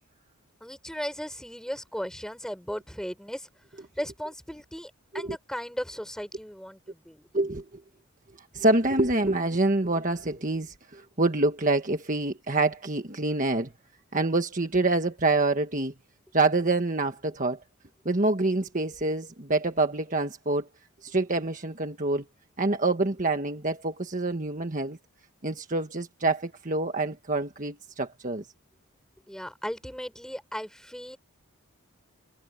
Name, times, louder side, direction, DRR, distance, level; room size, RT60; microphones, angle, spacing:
voice 1, 0.6-3.5 4.0-7.3 29.3-31.2, equal, 5° left, 5.6 m, -36 dB
voice 2, 7.3-7.8 8.5-13.7 14.1-15.9 16.3-17.6 18.0-20.7 21.0-22.2 22.6-25.0 25.4-28.5, right 2 dB, 35° right, 1.5 m, -26 dB
head